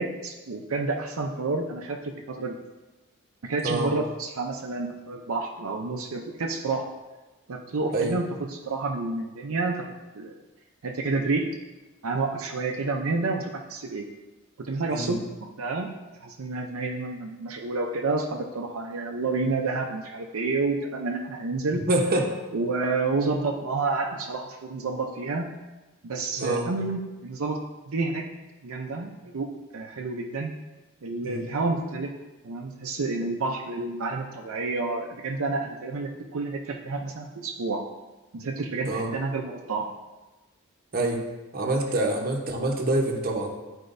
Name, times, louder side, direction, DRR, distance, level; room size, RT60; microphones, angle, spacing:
voice 1, 0.0-2.6 3.4-6.9 7.5-9.9 10.1-10.4 10.8-11.5 12.0-14.1 14.6-15.9 16.2-21.8 22.5-25.5 26.0-27.6 27.9-28.2 28.6-29.5 29.7-30.5 31.0-32.1 32.4-37.8 38.3-39.9, right 3 dB, 75° right, 1 dB, 0.6 m, -29 dB
voice 2, 21.9-22.3 26.4-26.7 31.2-31.5 38.9-39.1 40.9-41.2 41.5-43.5, right 2 dB, 45° right, 1 dB, 1.0 m, -26 dB
11.5 x 4.4 x 2.6 m, 1.1 s
head